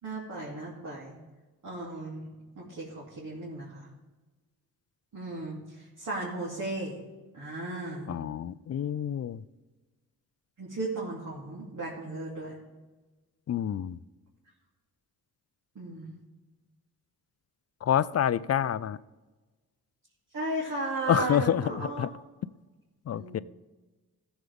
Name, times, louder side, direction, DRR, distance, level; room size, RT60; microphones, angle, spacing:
voice 1, 0.0-1.2 1.6-2.2 2.6-3.9 5.1-7.0 7.3-8.2 10.6-12.6 15.7-16.1 20.3-22.1 23.1-23.4, right 2 dB, 55° right, -6 dB, 2.7 m, -35 dB
voice 2, 8.1-9.4 13.5-14.0 17.8-19.0 21.1-22.1 23.1-23.4, left 10 dB, 40° left, 18 dB, 0.4 m, -27 dB
14.0 x 7.2 x 3.5 m, 1.2 s
cardioid pair, 60°, 38 cm